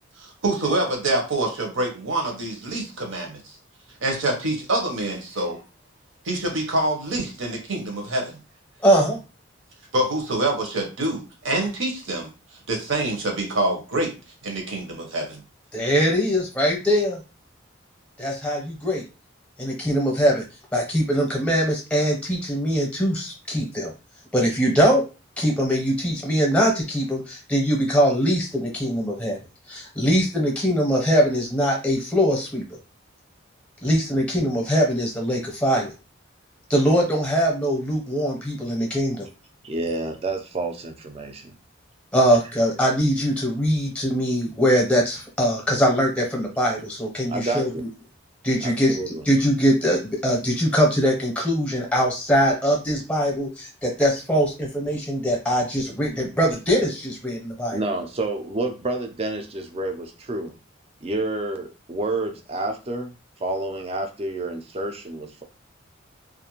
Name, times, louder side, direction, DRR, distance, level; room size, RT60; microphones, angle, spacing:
voice 1, 0.2-3.5 4.0-5.6 6.2-8.4 9.9-12.3 12.7-14.1 14.4-15.4, right 1 dB, 75° right, 2 dB, 0.8 m, -26 dB
voice 2, 8.8-9.2 15.7-17.2 18.2-19.0 19.6-20.4 20.7-23.9 24.3-25.0 25.4-29.4 29.7-32.6 33.8-35.9 36.7-39.3 42.1-47.9 48.4-49.0 49.3-57.8, equal, 5° left, -1 dB, 0.7 m, -22 dB
voice 3, 39.6-41.5 47.3-47.9 48.6-49.3 57.7-60.5 61.0-63.1 63.4-65.4, right 2 dB, 30° right, 5 dB, 0.4 m, -29 dB
2.4 x 2.1 x 2.9 m, 0.31 s
head